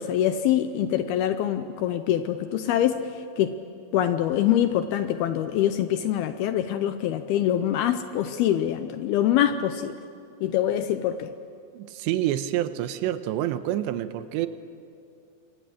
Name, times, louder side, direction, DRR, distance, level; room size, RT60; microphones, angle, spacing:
voice 1, 0.0-3.5 3.9-10.0 10.4-11.3, left 11 dB, 80° left, 9 dB, 2.3 m, -24 dB
voice 2, 11.7-14.5, right 13 dB, 85° right, 11 dB, 3.1 m, -27 dB
27.5 x 24.0 x 7.7 m, 2.4 s
omnidirectional pair, 5.1 m